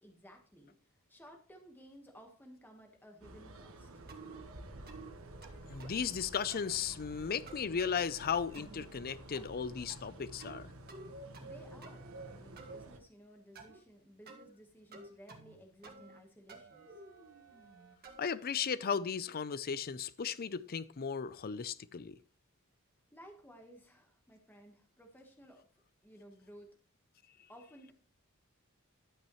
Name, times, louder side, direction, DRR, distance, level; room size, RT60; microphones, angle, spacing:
voice 1, 0.0-4.0 11.4-16.9 23.1-25.7 26.0-26.8 27.5-27.9, equal, 10° left, 1.3 m, -57 dB
sound 1, 3.2-13.0, right 1 dB, 75° right, 1.2 m, -50 dB
sound 2, 4.1-4.5 4.9-5.1 5.4-6.1 6.5-6.8 7.5-8.0 8.5-8.9 9.3-9.6 9.9-10.6 10.9-11.5 11.8-12.7 13.6-13.8 14.3-14.5 14.9-15.6 15.8-16.2 16.5-18.3, right 3 dB, 50° right, 1.7 m, -52 dB
voice 2, 5.7-10.7 18.2-22.1, left 6 dB, 45° left, 0.5 m, -36 dB
11.5 x 8.8 x 3.1 m
head